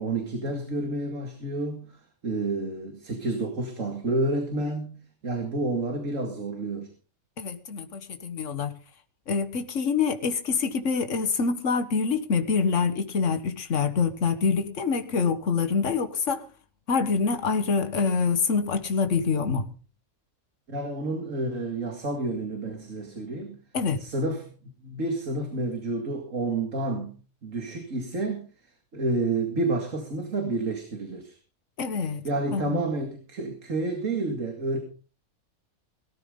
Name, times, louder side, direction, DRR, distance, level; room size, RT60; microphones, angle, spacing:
voice 1, 0.0-6.9 20.7-23.6 24.0-24.5 24.8-27.2 27.4-28.5 28.9-31.4 32.2-34.8, right 2 dB, 65° right, 4 dB, 2.5 m, -29 dB
voice 2, 7.4-8.7 9.3-16.4 16.9-19.7 23.7-24.0 31.8-32.2 32.5-32.8, left 5 dB, 60° left, 8 dB, 1.8 m, -26 dB
17.5 x 14.0 x 3.9 m, 0.36 s
omnidirectional pair, 1.5 m